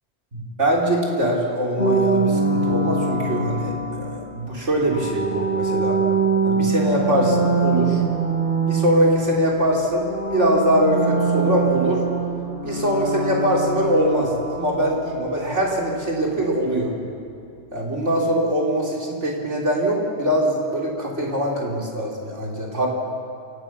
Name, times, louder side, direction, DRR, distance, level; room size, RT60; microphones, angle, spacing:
voice 1, 0.3-6.0 6.4-8.0 8.7-10.1 10.3-12.0 12.6-16.9 17.7-22.9, right 1 dB, 75° right, -2 dB, 3.9 m, -22 dB
sound 1, 1.8-4.2 4.8-9.7 10.0-14.9, right 3 dB, 50° left, 5.8 m, -23 dB
28.0 x 16.5 x 6.1 m, 2.5 s
omnidirectional pair, 1.2 m